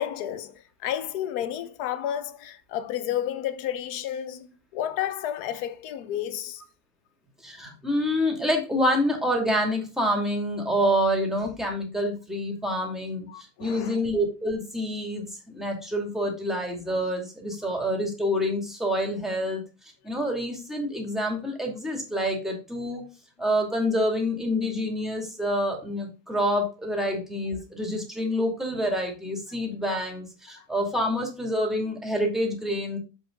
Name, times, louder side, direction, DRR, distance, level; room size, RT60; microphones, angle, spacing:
voice 1, 0.0-6.6 13.3-14.0 17.6-17.7 30.6-30.7, left 11 dB, 85° left, 1.2 m, -31 dB
voice 2, 7.4-13.3 13.6-15.3 15.5-19.6 20.0-23.0 23.4-33.0, equal, ahead, 2.5 m, -27 dB
7.3 x 5.9 x 3.9 m
omnidirectional pair, 1.6 m